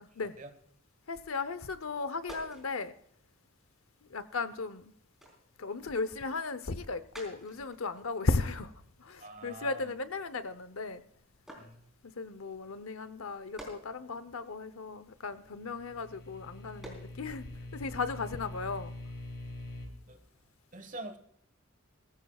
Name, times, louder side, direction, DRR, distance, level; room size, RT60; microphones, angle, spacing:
sound 1, 0.7-1.1 1.5-4.6 5.0-10.8 11.4-16.1 16.6-17.3 17.7-17.9, right 1 dB, ahead, 3.9 m, -54 dB
voice 1, 1.1-2.9 4.0-4.9 5.6-8.7 9.0-11.0 12.0-18.9, left 3 dB, 90° left, 0.8 m, -36 dB
voice 2, 9.2-9.9 11.6-11.8 20.1-20.2 20.7-21.2, right 2 dB, 40° right, 1.4 m, -44 dB
sound 2, 15.3-19.9, left 1 dB, 60° left, 3.1 m, -44 dB
19.0 x 15.0 x 2.4 m
head